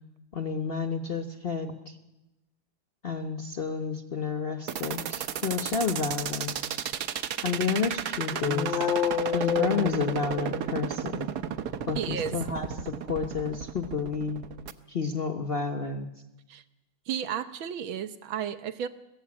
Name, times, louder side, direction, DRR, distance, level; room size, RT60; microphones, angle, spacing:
voice 1, 0.3-2.0 3.0-6.7 7.4-8.8 9.3-11.3 11.9-14.4 14.9-16.1, left 5 dB, 40° left, 7 dB, 1.0 m, -30 dB
sound 1, 4.7-14.7, right 8 dB, 60° right, 1.3 m, -33 dB
sound 2, 8.3-10.9, left 8 dB, 65° left, 1.7 m, -29 dB
voice 2, 12.0-12.3 16.5-16.6 17.1-18.9, right 8 dB, 75° right, 11 dB, 1.8 m, -33 dB
21.5 x 15.5 x 8.7 m, 0.99 s
omnidirectional pair, 2.3 m